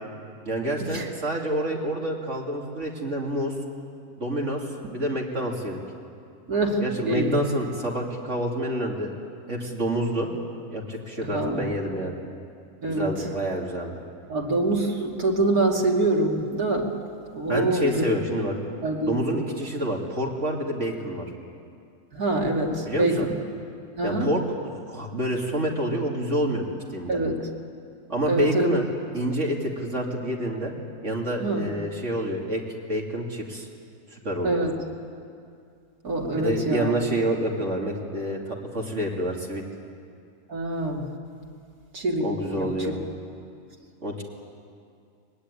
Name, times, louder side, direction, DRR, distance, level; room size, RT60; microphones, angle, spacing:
voice 1, 0.4-3.5 4.2-4.7 4.9-5.8 6.8-9.1 9.5-10.3 10.7-12.2 12.9-14.0 17.5-18.6 19.1-21.3 22.8-23.3 24.0-24.4 24.9-26.6 26.9-27.2 28.1-28.9 29.1-30.7 31.0-32.6 32.9-33.7 34.1-34.6 36.3-39.6 42.2-43.0 44.0-44.2, right 1 dB, 50° right, -1 dB, 3.1 m, -28 dB
voice 2, 6.5-7.4 11.2-11.7 12.8-13.1 14.3-16.9 17.3-17.9 18.8-19.2 22.1-23.3 24.0-24.3 27.1-27.4 28.3-28.7 31.4-31.7 34.4-34.7 36.0-36.9 40.5-41.1 41.9-42.3 42.6-42.9, right 2 dB, 70° right, -1 dB, 3.2 m, -25 dB
24.5 x 20.5 x 9.9 m, 2.4 s
omnidirectional pair, 1.6 m